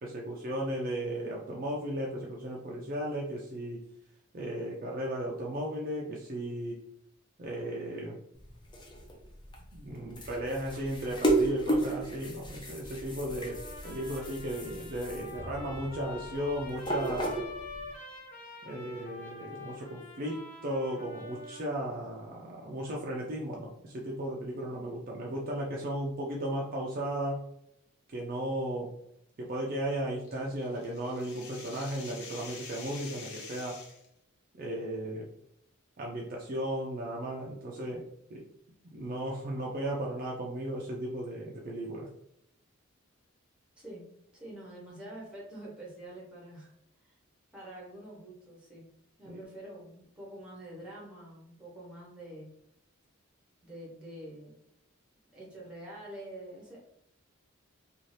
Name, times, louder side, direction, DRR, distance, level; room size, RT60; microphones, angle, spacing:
voice 1, 0.0-3.8 4.3-6.8 7.4-8.2 9.7-17.3 18.6-27.5 28.1-28.9 29.4-33.8 34.5-35.3 36.0-38.4 38.9-42.1 49.3-49.4, right 1 dB, 40° right, -2 dB, 0.4 m, -35 dB
sound 1, 8.4-17.9, right 2 dB, 20° left, 0.5 m, -34 dB
Trumpet, 13.3-21.9, left 3 dB, 40° left, 0.9 m, -47 dB
sound 2, 30.2-34.1, left 4 dB, 85° left, 0.7 m, -46 dB
voice 2, 44.3-46.7 47.0-47.2 47.5-48.9 49.2-52.5 53.6-54.6 55.3-56.8, right 1 dB, 5° right, -4 dB, 0.9 m, -46 dB
2.6 x 2.4 x 3.1 m, 0.75 s
head